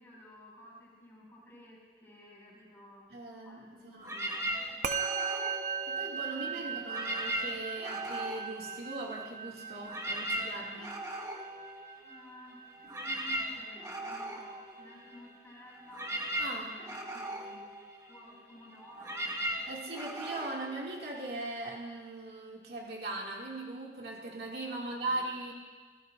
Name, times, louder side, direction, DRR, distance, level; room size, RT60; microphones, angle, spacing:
voice 1, 0.0-3.1 3.4-4.5 6.3-6.8 12.0-16.1 16.6-17.2 18.1-19.3 24.7-25.2, left 1 dB, 15° left, -6 dB, 6.2 m, -54 dB
voice 2, 3.1-4.2 4.4-4.6 5.9-11.1 16.4-17.7 19.7-25.5, right 2 dB, 60° right, -3 dB, 2.5 m, -40 dB
sound 1, 4.0-6.4 6.8-9.3 9.6-21.6, right 1 dB, 20° right, 1.6 m, -39 dB
Musical instrument, 4.8-14.4, right 6 dB, 45° right, 0.8 m, -39 dB
27.0 x 19.0 x 2.6 m, 1.4 s
head